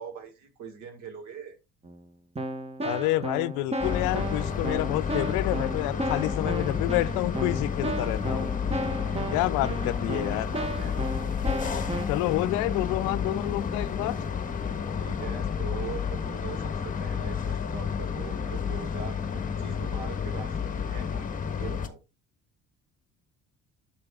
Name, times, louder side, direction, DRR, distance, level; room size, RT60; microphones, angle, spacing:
voice 1, 0.0-1.6 9.2-10.9 15.0-21.3 21.5-22.0, right 6 dB, 70° right, 2.0 m, -42 dB
Keyboard (musical), 1.8-2.0 2.3-12.0, right 1 dB, 20° right, 1.3 m, -34 dB
voice 2, 2.8-8.5 9.3-10.5 12.1-14.2, left 18 dB, 85° left, 0.5 m, -28 dB
sound 1, 3.8-21.9, left 7 dB, 25° left, 1.3 m, -31 dB
9.8 x 6.9 x 2.4 m
cardioid pair, 105°, 30 cm